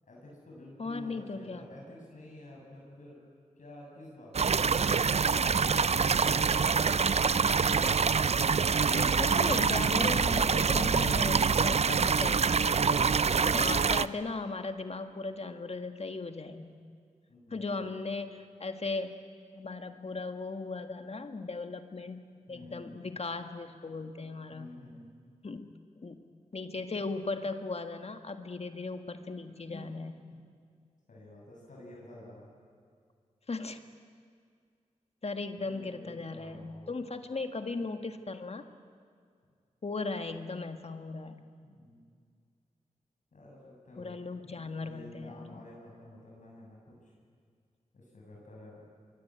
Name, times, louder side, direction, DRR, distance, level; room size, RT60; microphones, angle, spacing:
voice 1, 0.0-3.2 3.6-7.3 17.3-17.9 22.5-23.0 24.5-25.1 29.7-30.0 30.3-30.5 31.1-32.5 35.6-37.0 41.6-42.1 43.3-47.1 47.9-48.8, left 1 dB, 75° left, -3 dB, 7.1 m, -50 dB
voice 2, 0.8-1.6 8.9-16.8 17.5-19.2 19.5-22.2 22.5-24.8 25.4-25.7 26.0-26.2 26.5-30.2 33.5-33.8 35.2-38.6 39.8-41.4 44.0-45.6, left 3 dB, 50° left, 7 dB, 1.8 m, -37 dB
sound 1, 4.3-14.1, right 5 dB, 55° right, 0.6 m, -25 dB
24.0 x 23.0 x 9.0 m, 2.2 s
cardioid pair, 60°, 13 cm